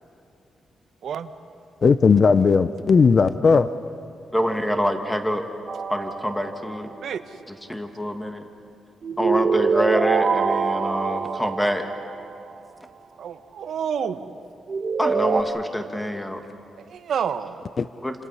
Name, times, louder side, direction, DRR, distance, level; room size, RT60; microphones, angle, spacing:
voice 1, 1.8-3.7 17.8-17.9, left 5 dB, 40° left, 12 dB, 0.6 m, -17 dB
voice 2, 4.3-5.4 5.9-6.9 7.5-8.4 9.2-11.8 15.0-16.4 18.0-18.1, equal, 5° left, 5 dB, 1.8 m, -26 dB
sound 1, 5.7-6.8 9.0-12.3 14.7-15.4, right 5 dB, 45° right, 1.6 m, -24 dB
voice 3, 13.2-14.3 16.9-17.6, right 7 dB, 70° right, 10 dB, 1.1 m, -28 dB
29.0 x 26.5 x 5.6 m, 2.5 s
cardioid pair, 125°, 0 cm